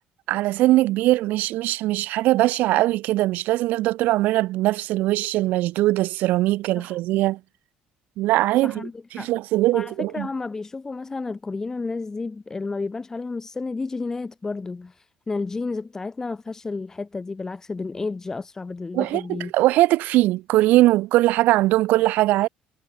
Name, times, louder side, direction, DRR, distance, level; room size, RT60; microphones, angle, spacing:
voice 1, 0.3-7.4 8.2-8.9 9.1-10.3 18.9-22.5, right 17 dB, 75° right, 0.9 m, -21 dB
voice 2, 8.6-9.3 9.7-19.5, left 3 dB, 15° left, 1.5 m, -31 dB
cardioid pair, 135°, 3 cm